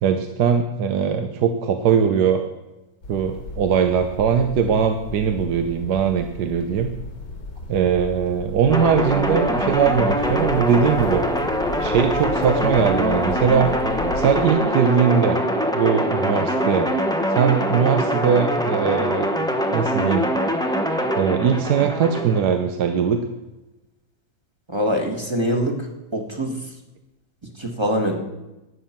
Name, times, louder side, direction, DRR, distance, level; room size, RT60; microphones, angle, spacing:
voice 1, 0.0-2.4 3.1-6.9 7.7-11.2 11.8-13.7 14.2-15.4 15.7-16.9 17.3-19.3 19.7-20.3 21.2-23.2, right 7 dB, 70° right, 6 dB, 1.3 m, -20 dB
sound 1, 3.0-14.5, left 2 dB, 90° left, 2.6 m, -35 dB
sound 2, 8.7-22.4, equal, 5° left, 0.6 m, -23 dB
voice 2, 24.7-26.6 27.6-28.2, equal, 15° right, 2 dB, 1.5 m, -24 dB
12.5 x 9.2 x 5.8 m, 1.0 s
omnidirectional pair, 1.8 m